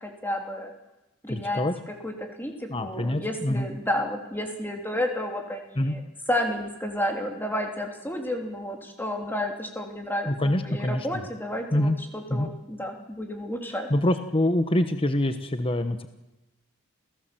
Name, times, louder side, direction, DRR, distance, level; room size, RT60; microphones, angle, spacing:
voice 1, 0.0-0.7 1.2-6.0 6.3-13.9, left 1 dB, 10° left, 2 dB, 3.3 m, -31 dB
voice 2, 1.3-1.7 2.7-3.7 5.8-6.0 10.3-11.1 11.7-12.0 12.3-12.5 13.9-16.1, left 1 dB, 25° left, 9 dB, 1.1 m, -25 dB
28.0 x 17.5 x 7.8 m, 1.0 s
head